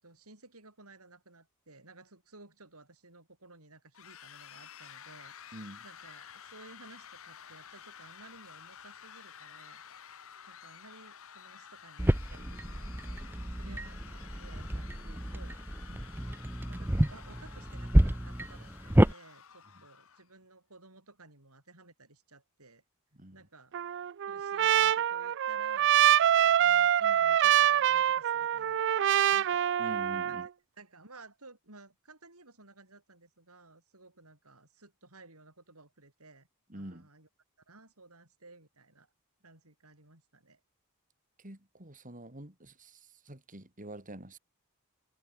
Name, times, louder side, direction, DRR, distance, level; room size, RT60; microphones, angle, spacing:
voice 1, 0.0-9.8 10.5-15.6 16.7-22.8 23.3-23.7 24.2-26.0 26.4-30.5 30.8-36.5 36.7-37.3 37.7-39.1 39.4-40.6, right 3 dB, 75° right, 7.9 m, -56 dB
sound 1, 3.9-20.2, left 8 dB, 65° left, 1.7 m, -52 dB
voice 2, 5.5-5.8 13.6-13.8 15.9-16.1 23.1-23.4 29.8-30.5 36.7-37.1 41.4-44.4, right 1 dB, 35° right, 4.3 m, -46 dB
sound 2, 12.0-19.1, right 1 dB, 10° right, 0.7 m, -29 dB
Trumpet, 23.7-30.5, right 10 dB, 55° right, 0.4 m, -25 dB
head